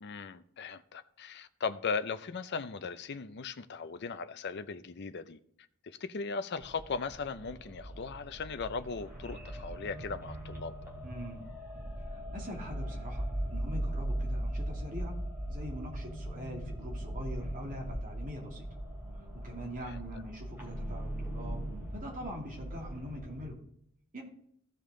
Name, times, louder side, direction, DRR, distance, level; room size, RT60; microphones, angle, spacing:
voice 1, 0.0-5.4 5.8-10.7 19.8-20.0, left 5 dB, 50° left, 0.6 m, -38 dB
Dungeon Ambiance, 6.6-23.5, right 1 dB, 10° right, 2.7 m, -39 dB
voice 2, 11.0-11.4 12.0-15.1 15.5-18.8 19.2-21.6 21.9-23.6 24.1-24.2, equal, 40° right, 2.7 m, -43 dB
15.5 x 5.4 x 3.8 m
head